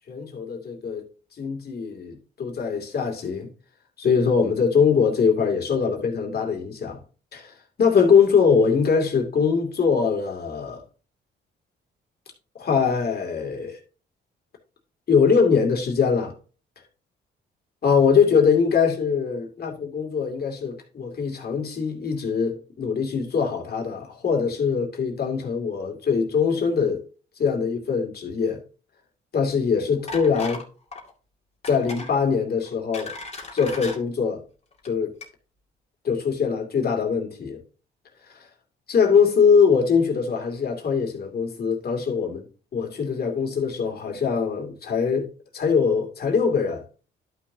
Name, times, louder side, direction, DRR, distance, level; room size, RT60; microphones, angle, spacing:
voice 1, 0.1-1.1 1.4-3.5 4.0-7.0 7.3-7.5 7.8-10.8 12.6-13.8 15.1-16.3 17.8-27.0 27.4-28.6 29.3-30.6 31.7-33.1 33.5-34.4 34.8-35.1 36.0-37.6 38.3-38.4 38.9-42.5 42.7-46.8, left 6 dB, 50° left, 2.6 m, -22 dB
sound 1, 30.1-30.7 30.9-31.1 31.6-32.1 32.6-34.0 34.7-34.9 35.2-35.3, left 3 dB, 30° left, 2.3 m, -36 dB
11.5 x 6.1 x 2.8 m
cardioid pair, 90°, 20 cm